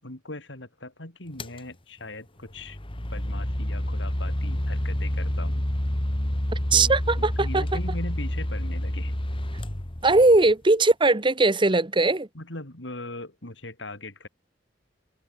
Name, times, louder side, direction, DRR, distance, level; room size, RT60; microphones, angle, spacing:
voice 1, 0.0-2.8 3.1-5.7 6.7-9.1 10.2-10.3 12.3-14.3, left 2 dB, 85° left, 5.0 m, -39 dB
sound 1, 1.4-1.6 2.5-10.5, left 1 dB, 30° left, 2.0 m, -28 dB
voice 2, 6.7-7.6 10.0-12.3, right 2 dB, 25° right, 1.3 m, -20 dB
head